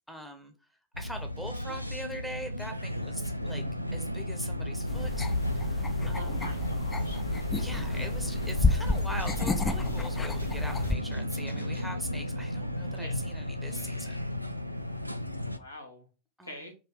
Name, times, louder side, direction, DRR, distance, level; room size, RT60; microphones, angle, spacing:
voice 1, 0.1-0.5 1.0-3.6 3.9-6.6 7.6-14.3 16.4-16.7, equal, ahead, 0.8 m, -42 dB
sound 1, 0.9-15.6, left 1 dB, 90° right, 0.3 m, -33 dB
sound 2, 4.9-11.0, left 3 dB, 15° left, 0.4 m, -32 dB
voice 2, 6.1-7.2 13.0-13.2 15.6-16.0 16.4-16.7, left 1 dB, 85° left, 1.1 m, -43 dB
3.7 x 2.6 x 4.7 m
figure-of-eight pair, 90°, 0 cm